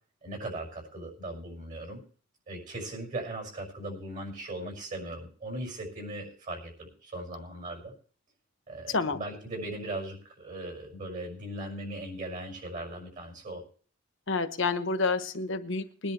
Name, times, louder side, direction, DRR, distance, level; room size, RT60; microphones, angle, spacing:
voice 1, 0.2-2.0 2.5-7.9 8.7-13.6, right 1 dB, 40° right, 1 dB, 6.1 m, -38 dB
voice 2, 14.3-16.1, left 4 dB, 65° left, 8 dB, 1.2 m, -29 dB
21.5 x 10.5 x 3.3 m, 0.44 s
head